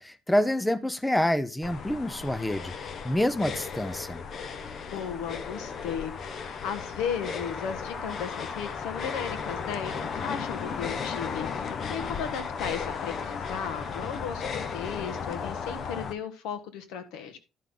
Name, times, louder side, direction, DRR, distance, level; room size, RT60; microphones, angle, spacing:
voice 1, 0.0-2.7 3.0-4.2, left 1 dB, 5° left, 0.5 m, -27 dB
sound 1, 1.6-16.1, left 6 dB, 40° left, 0.8 m, -35 dB
voice 2, 4.9-17.4, left 7 dB, 90° left, 1.5 m, -36 dB
12.0 x 5.6 x 3.8 m
cardioid pair, 155°, 0 cm